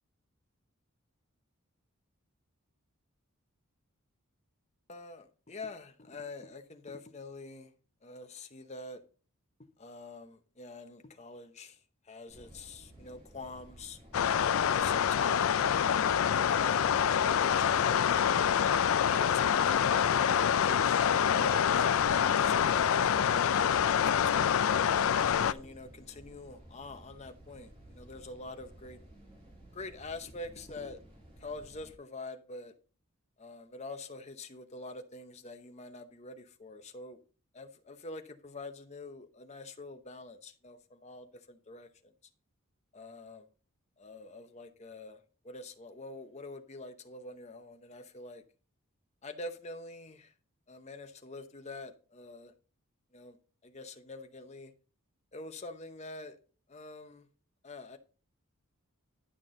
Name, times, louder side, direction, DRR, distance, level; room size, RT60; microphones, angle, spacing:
voice 1, 4.9-7.7 8.0-9.0 9.8-11.8 12.0-14.0 14.6-15.9 16.2-18.3 18.6-24.0 24.3-24.8 25.4-29.0 29.7-31.0 31.4-32.7 33.4-37.2 37.5-42.1 42.9-43.5 44.0-48.4 49.2-50.3 50.7-52.5 53.1-53.4 53.6-54.7 55.3-56.4 56.7-57.3 57.6-58.0, left 2 dB, 30° left, 0.8 m, -45 dB
sound 1, 12.3-31.9, right 1 dB, 25° right, 2.9 m, -55 dB
sound 2, 14.1-25.5, left 8 dB, 70° left, 0.4 m, -26 dB
11.0 x 5.9 x 3.8 m
head